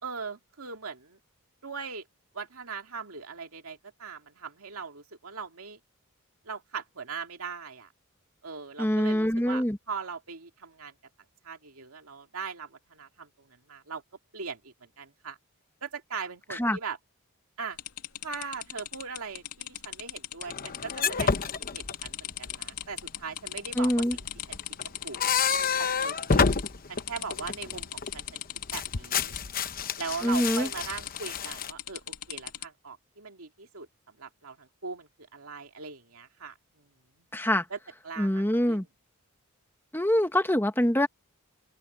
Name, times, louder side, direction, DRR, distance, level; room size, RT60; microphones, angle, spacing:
voice 1, 0.0-1.2 1.6-2.0 2.3-5.8 6.4-7.9 8.4-10.9 11.4-14.0 14.3-15.4 15.8-17.0 17.6-17.8 18.2-24.2 24.5-24.6 24.8-25.2 25.8-26.4 26.9-28.4 28.7-29.4 30.0-36.9 37.2-37.3 37.7-37.8 38.0-38.9, right 5 dB, 70° right, 2.4 m, -40 dB
voice 2, 8.8-9.8 16.5-16.8 23.8-24.2 30.2-30.7 37.3-37.6 38.2-38.8 39.9-41.1, equal, 10° left, 1.6 m, -25 dB
sound 1, 17.8-25.7 26.0-26.7 27.0-29.4 30.0-30.2 30.5-32.6, left 12 dB, 85° left, 2.8 m, -38 dB
sound 2, 20.5-22.5 24.0-28.3 28.6-31.7, left 5 dB, 40° left, 0.9 m, -29 dB
open air
head